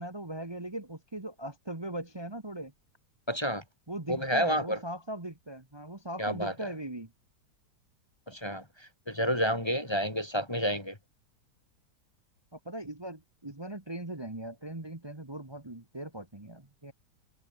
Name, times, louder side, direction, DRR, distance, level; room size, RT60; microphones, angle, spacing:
voice 1, 0.0-2.7 3.9-7.1 12.5-16.9, right 1 dB, 15° right, 1.8 m, -39 dB
voice 2, 3.3-3.6 4.1-4.8 6.2-6.5 8.3-11.0, equal, 15° left, 2.3 m, -30 dB
open air
omnidirectional pair, 1.8 m